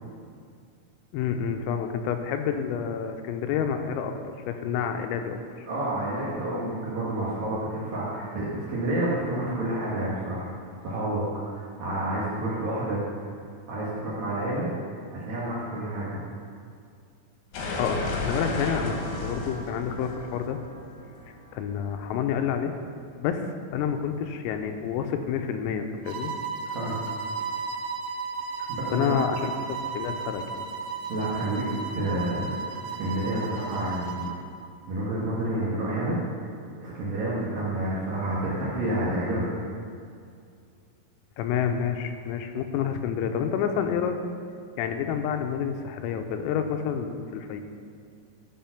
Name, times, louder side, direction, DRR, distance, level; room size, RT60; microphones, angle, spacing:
voice 1, 1.1-5.7 17.8-20.6 21.5-22.7 23.2-26.3 28.6-30.7 41.4-44.2 44.8-47.6, left 7 dB, 85° left, 6 dB, 3.4 m, -29 dB
voice 2, 5.6-10.5 10.8-13.0 13.7-14.7 15.1-16.2 26.6-27.0 28.7-29.2 31.1-31.6 31.9-34.3 34.9-36.2 36.8-39.5, right 1 dB, 65° right, -7 dB, 2.4 m, -29 dB
sound 1, 17.5-22.3, left 2 dB, 70° left, 2.4 m, -33 dB
sound 2, 26.1-34.4, right 5 dB, 90° right, 2.5 m, -34 dB
13.0 x 5.3 x 5.8 m, 2.3 s
omnidirectional pair, 5.9 m